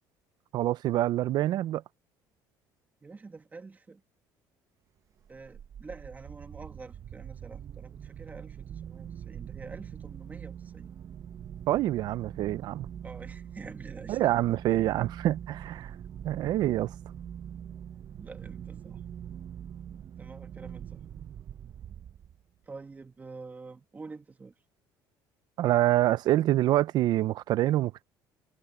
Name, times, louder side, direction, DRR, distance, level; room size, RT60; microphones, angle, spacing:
voice 1, 0.5-1.8 11.7-12.9 14.1-15.9 16.2-16.9 25.6-28.0, right 14 dB, 60° right, 0.7 m, -26 dB
voice 2, 3.0-4.0 5.3-10.9 13.0-14.3 18.2-19.0 20.0-21.0 22.7-24.5, right 4 dB, 20° right, 1.8 m, -47 dB
sound 1, 5.2-22.6, right 9 dB, 45° right, 1.3 m, -43 dB
cardioid pair, 110°, 8 cm